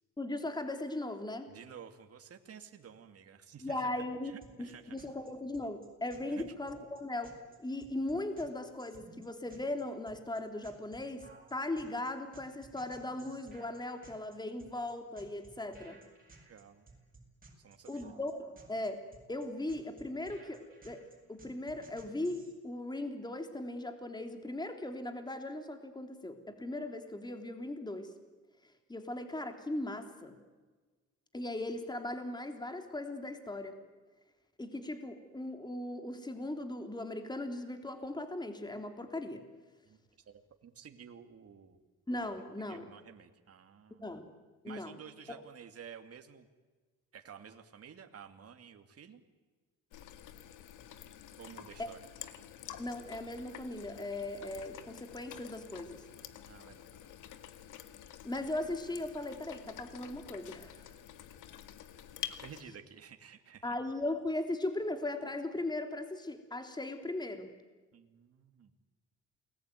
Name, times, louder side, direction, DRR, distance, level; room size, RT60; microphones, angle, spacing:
voice 1, 0.2-1.5 3.6-4.3 4.6-7.3 7.6-16.0 17.9-19.0 19.3-28.1 28.9-30.4 31.3-33.8 34.6-39.4 42.1-42.9 43.9-44.3 44.6-45.0 45.3-45.4 51.8-51.9 52.8-56.0 58.2-60.8 63.6-67.5, left 2 dB, 15° left, 6 dB, 3.3 m, -38 dB
voice 2, 1.5-3.9 4.2-5.0 6.3-6.5 16.5-16.9 17.6-18.1 39.8-41.8 42.7-44.1 44.6-46.5 47.1-49.2 51.4-52.0 56.5-57.1 62.4-63.8 67.9-68.7, right 7 dB, 50° right, 6 dB, 2.6 m, -52 dB
sound 1, 4.4-22.5, right 2 dB, 30° right, 7.7 m, -58 dB
sound 2, 49.9-62.6, left 11 dB, 85° left, 2.0 m, -49 dB
28.5 x 21.0 x 9.4 m, 1.3 s
cardioid pair, 90°, 30 cm